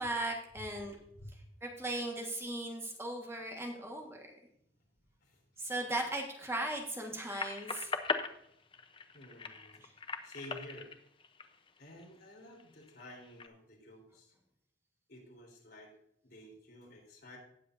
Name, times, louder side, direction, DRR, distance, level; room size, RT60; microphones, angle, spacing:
voice 1, 0.0-0.9 1.6-4.2 5.6-7.9 9.8-9.9, right 1 dB, 15° right, 1 dB, 1.5 m, -37 dB
voice 2, 0.9-1.3 5.2-5.4 9.1-9.8 10.2-10.9 11.8-14.3 15.1-15.9 16.2-17.4, left 1 dB, 60° left, 0 dB, 3.7 m, -52 dB
sound 1, 7.4-12.1 12.6-13.5, left 4 dB, 30° left, 0.7 m, -40 dB
18.0 x 7.5 x 2.6 m, 0.73 s
head